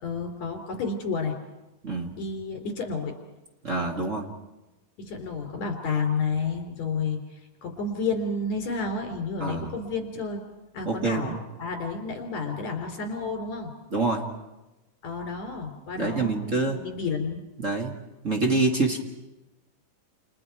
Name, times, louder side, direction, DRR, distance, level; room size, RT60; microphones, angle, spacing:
voice 1, 0.0-1.3 2.2-3.1 5.0-10.4 10.7-13.7 15.0-17.5, left 4 dB, 60° left, 4 dB, 4.4 m, -31 dB
voice 2, 3.6-4.3 9.4-9.7 10.8-11.4 13.9-14.2 16.0-16.8 17.6-18.0 18.2-19.0, right 3 dB, 35° right, 1 dB, 1.3 m, -26 dB
29.5 x 28.5 x 4.7 m, 1.0 s
omnidirectional pair, 3.8 m